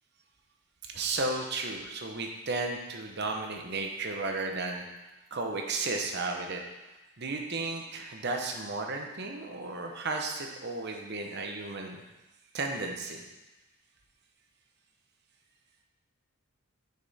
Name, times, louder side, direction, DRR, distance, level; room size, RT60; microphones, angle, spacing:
voice 1, 0.8-4.8 5.3-6.6 7.2-12.0 12.5-13.2, right 3 dB, 50° right, 2 dB, 0.8 m, -34 dB
6.6 x 5.3 x 4.1 m, 1.1 s
head